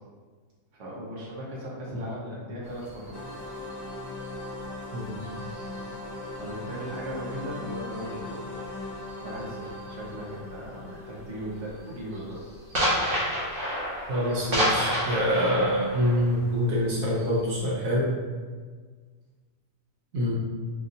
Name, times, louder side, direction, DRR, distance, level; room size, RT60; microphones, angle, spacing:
voice 1, 0.7-3.4 6.3-8.4 9.2-12.4, equal, 65° right, -6 dB, 1.3 m, -38 dB
sound 1, 2.6-6.5 6.8-10.3 10.5-10.9 11.2-17.6, equal, 45° right, 1.2 m, -31 dB
sound 2, 3.1-13.8, left 2 dB, 40° left, 0.3 m, -39 dB
voice 2, 4.9-5.3 14.1-18.1 20.1-20.3, equal, 85° right, -6 dB, 1.2 m, -25 dB
5.3 x 2.6 x 2.6 m, 1.5 s
omnidirectional pair, 1.4 m